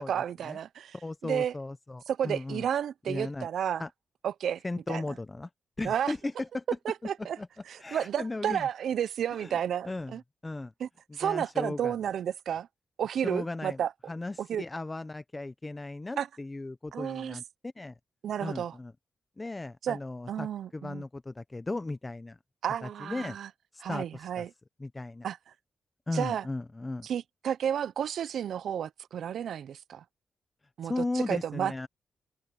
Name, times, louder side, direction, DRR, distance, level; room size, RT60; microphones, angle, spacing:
voice 1, 0.0-0.9 1.2-1.5 2.1-3.8 4.2-4.6 4.9-5.0 5.8-6.1 6.8-7.4 7.7-10.2 10.8-12.7 13.0-13.9 14.4-14.6 16.2-16.3 16.9-17.4 18.2-18.8 19.8-20.0 20.3-21.0 22.6-23.5 23.8-24.5 25.2-25.4 26.1-26.5 27.0-30.0 30.8-31.7, right 9 dB, 80° right, 0.6 m, -31 dB
voice 2, 1.0-2.7 3.1-3.5 3.8-3.9 4.6-5.5 5.8-6.6 7.0-7.1 7.4-7.5 7.8-8.6 9.4-9.6 9.8-10.2 10.4-10.7 11.2-11.9 13.2-13.8 14.1-17.9 18.4-18.9 19.4-20.5 20.7-22.4 22.8-23.4 23.7-24.5 24.8-25.3 26.1-27.1 30.8-31.9, left 2 dB, 25° left, 0.8 m, -36 dB
cardioid pair, 75°, 0 cm